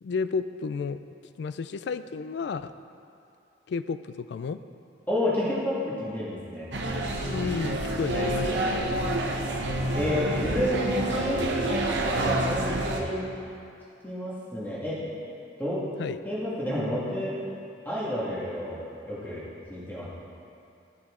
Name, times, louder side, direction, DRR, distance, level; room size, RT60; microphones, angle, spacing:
voice 1, 0.0-2.7 3.7-4.6 7.3-8.9 16.0-16.2, left 5 dB, 65° left, 12 dB, 0.3 m, -32 dB
voice 2, 5.1-6.7 9.9-11.8 12.2-13.3 14.0-15.1 15.6-15.8 16.2-17.3 17.9-19.4 19.7-20.1, left 1 dB, 10° left, -8 dB, 1.9 m, -30 dB
sound 1, 6.7-13.0, right 1 dB, 65° right, 1.0 m, -28 dB
11.5 x 7.1 x 3.7 m, 2.7 s
head